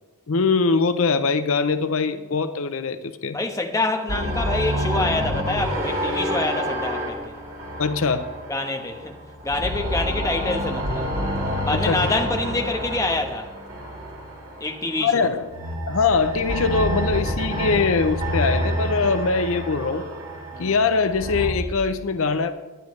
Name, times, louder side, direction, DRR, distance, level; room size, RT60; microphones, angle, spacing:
voice 1, 0.3-3.4 7.8-8.3 11.7-12.1 15.0-15.4 15.9-20.0 20.6-22.5, left 4 dB, 65° left, 0.6 m, -22 dB
voice 2, 3.3-7.3 8.5-9.1 9.4-11.1 11.6-13.5 14.6-15.3 20.5-20.7, left 2 dB, 15° left, 1.1 m, -26 dB
sound 1, 4.1-9.0 9.4-14.7 15.5-21.5, equal, 75° right, 3.1 m, -28 dB
21.0 x 10.0 x 3.2 m
head